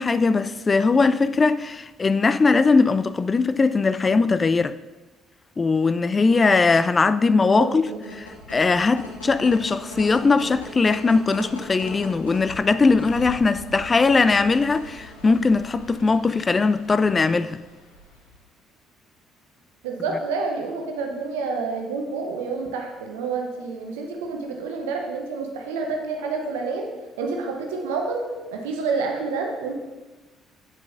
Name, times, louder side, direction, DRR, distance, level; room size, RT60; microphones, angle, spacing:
voice 1, 0.0-4.8 5.6-7.9 8.2-17.6, left 4 dB, 30° left, 0.3 m, -20 dB
voice 2, 7.4-8.2 19.8-26.9 27.2-29.7, right 4 dB, 75° right, 0.8 m, -29 dB
sound 1, 7.8-18.4, left 1 dB, 85° left, 1.1 m, -41 dB
7.6 x 7.5 x 2.5 m
figure-of-eight pair, 50°, 0 cm